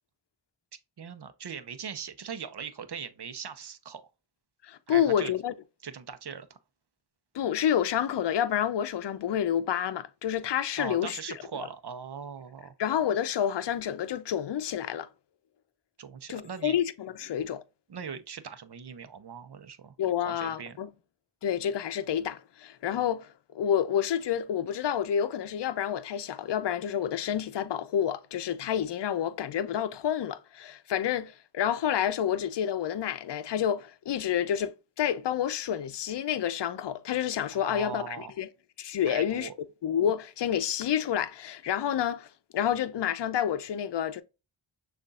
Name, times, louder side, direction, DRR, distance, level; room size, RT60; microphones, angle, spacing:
voice 1, 1.0-4.1 4.9-5.3 5.8-6.6 10.8-12.7 16.0-16.8 17.9-19.9 20.2-20.8 37.5-38.3 39.0-39.5, right 6 dB, 55° right, 0.8 m, -40 dB
voice 2, 4.6-5.5 7.3-11.2 12.8-15.1 16.3-17.6 20.0-20.9 21.4-23.3 23.5-38.5 38.8-39.5 39.8-42.3 42.5-44.2, left 9 dB, 60° left, 0.6 m, -29 dB
6.5 x 2.6 x 2.4 m
cardioid pair, 40°, 49 cm